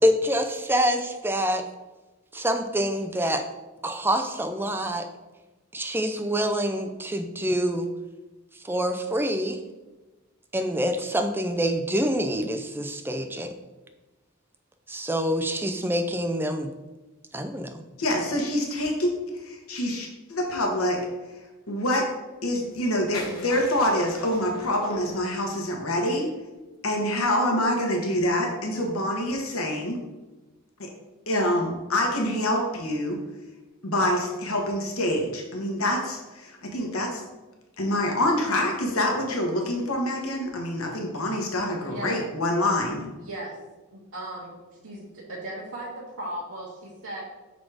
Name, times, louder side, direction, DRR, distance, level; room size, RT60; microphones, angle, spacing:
voice 1, 0.0-1.6 2.3-3.4 3.8-5.1 5.7-7.9 8.5-9.6 10.5-13.5 14.9-16.7 17.3-17.7, equal, 10° right, 6 dB, 0.4 m, -26 dB
voice 2, 18.0-21.0 21.7-22.1 22.4-26.3 26.8-30.0 30.8-30.9 31.3-33.2 33.8-37.2 37.8-43.1, left 1 dB, 90° left, 1 dB, 1.2 m, -26 dB
sound 1, 22.6-25.6, left 1 dB, 45° left, 1.9 m, -42 dB
voice 3, 41.8-42.2 43.2-43.6 43.9-47.2, right 1 dB, 85° right, -6 dB, 1.3 m, -37 dB
6.1 x 4.1 x 4.8 m, 1.1 s
head